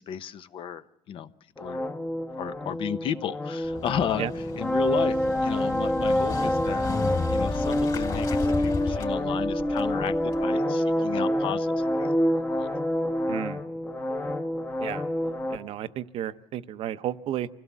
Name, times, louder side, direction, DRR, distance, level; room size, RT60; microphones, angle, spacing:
voice 1, 0.0-1.3 1.6-1.8 2.4-6.9 7.3-12.7, left 9 dB, 55° left, 13 dB, 0.8 m, -34 dB
sound 1, 1.6-15.6, left 1 dB, 15° left, 0.9 m, -27 dB
Motorcycle, 3.7-10.4, left 4 dB, 35° left, 3.2 m, -34 dB
voice 2, 13.3-13.6 14.8-15.0 15.5-17.5, right 11 dB, 60° right, 13 dB, 0.7 m, -32 dB
25.5 x 16.5 x 7.3 m, 1.0 s
cardioid pair, 130°, 11 cm